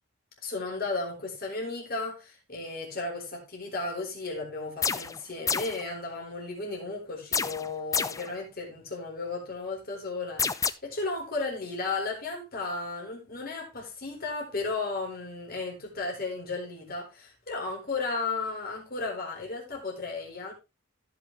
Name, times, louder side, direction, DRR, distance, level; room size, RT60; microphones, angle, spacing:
voice 1, 0.4-20.5, left 3 dB, 45° left, 4.2 m, -34 dB
sound 1, 4.8-5.2 5.5-5.8 7.3-8.3 10.4-10.7, left 6 dB, 15° left, 0.4 m, -28 dB
15.5 x 6.0 x 3.2 m
head